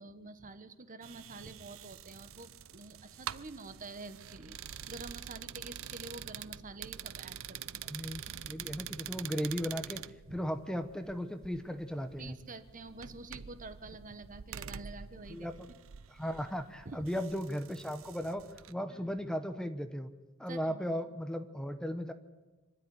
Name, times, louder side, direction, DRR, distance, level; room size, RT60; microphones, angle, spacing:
voice 1, 0.0-7.8 10.3-10.4 12.2-15.5 16.8-17.1 18.9-19.2 20.5-20.9, right 2 dB, 40° right, 10 dB, 1.4 m, -48 dB
sound 1, 1.0-18.7, right 9 dB, 70° right, 0.7 m, -46 dB
voice 2, 7.9-10.0 10.3-12.4 15.3-15.7 16.1-18.4 18.7-20.1 20.4-22.1, equal, 5° left, 9 dB, 1.0 m, -36 dB
25.0 x 13.0 x 9.7 m, 1.2 s
head